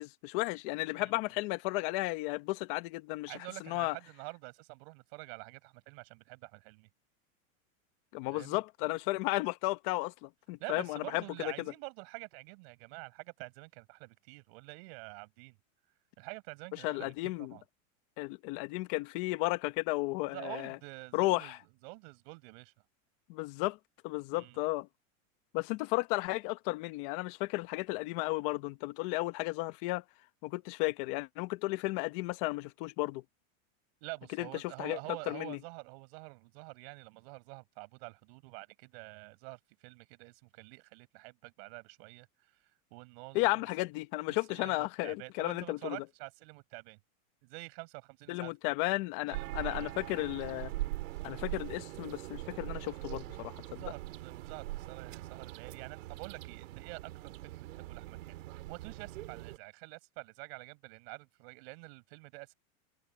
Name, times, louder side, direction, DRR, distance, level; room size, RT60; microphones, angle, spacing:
voice 1, 0.0-3.3 3.6-3.9 8.1-11.5 16.8-17.6 18.2-20.8 21.1-21.6 23.3-23.8 24.0-24.9 25.5-30.0 30.4-33.2 34.4-34.5 34.8-35.0 35.3-35.6 43.3-46.0 48.3-50.7 51.2-53.8, left 21 dB, 40° left, 1.3 m, -34 dB
voice 2, 3.3-6.9 8.3-8.6 10.6-15.6 16.2-17.6 20.2-21.5 21.8-22.7 24.3-24.6 34.0-42.3 42.9-43.7 44.3-47.0 47.4-48.5 49.3-49.9 53.7-62.5, right 31 dB, 45° right, 6.3 m, -47 dB
sound 1, 49.3-59.6, right 17 dB, 70° right, 2.7 m, -42 dB
supercardioid pair, 165°, 41 cm